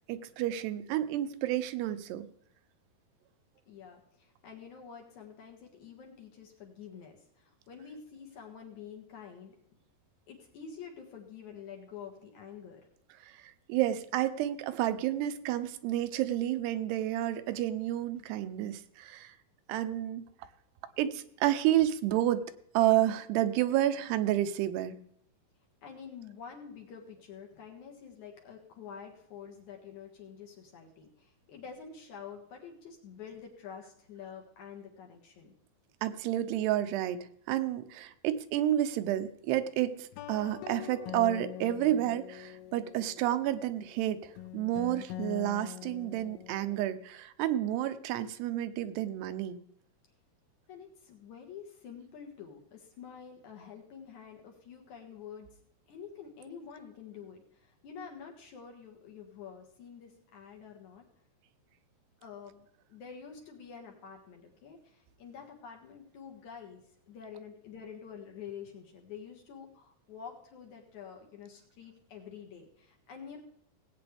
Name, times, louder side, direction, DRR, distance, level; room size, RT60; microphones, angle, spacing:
voice 1, 0.1-2.3 13.2-19.4 19.7-20.3 21.0-22.4 22.7-25.0 36.0-49.6, right 13 dB, 85° right, 11 dB, 2.8 m, -30 dB
voice 2, 3.7-9.6 10.3-12.9 25.8-35.5 50.7-55.6 55.9-61.1 62.2-73.4, left 7 dB, 60° left, 1 dB, 2.5 m, -48 dB
sound 1, 40.1-46.8, left 13 dB, 80° left, 2.6 m, -44 dB
18.0 x 8.8 x 3.4 m, 0.69 s
omnidirectional pair, 4.6 m